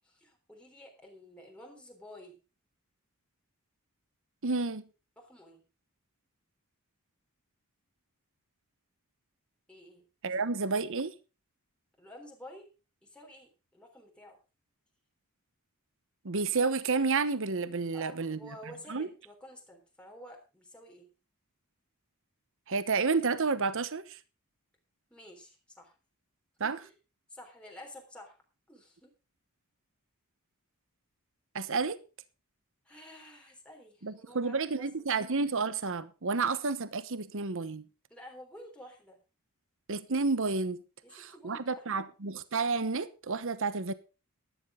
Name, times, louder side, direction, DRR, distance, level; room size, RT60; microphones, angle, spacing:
voice 1, 0.0-2.4 5.2-5.6 9.7-10.1 12.0-12.7 13.0-14.4 17.9-21.1 25.1-25.9 26.6-26.9 27.3-28.4 28.7-29.1 32.9-35.0 38.1-39.2 41.0-42.0, left 1 dB, 5° left, 3.6 m, -51 dB
voice 2, 4.4-4.8 10.2-11.1 16.2-18.4 18.9-19.1 22.7-24.2 26.6-26.8 31.5-32.0 34.0-37.8 39.9-40.8 41.1-43.9, right 4 dB, 60° right, 1.0 m, -30 dB
13.5 x 12.0 x 3.7 m
head